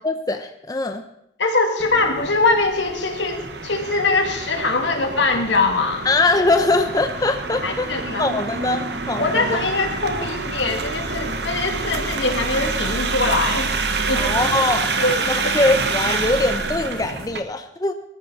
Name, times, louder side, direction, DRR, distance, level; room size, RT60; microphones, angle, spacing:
voice 1, 0.0-1.0 6.0-7.9 8.2-9.6 14.1-14.9 15.3-17.9, left 2 dB, 20° left, 7 dB, 0.7 m, -22 dB
voice 2, 1.4-6.1 7.6-8.3 9.2-13.8 14.1-14.4 15.0-15.2, left 3 dB, 80° left, 4 dB, 2.3 m, -22 dB
sound 1, 1.8-17.4, right 3 dB, 65° right, 1.2 m, -27 dB
19.0 x 13.5 x 4.1 m, 0.78 s
head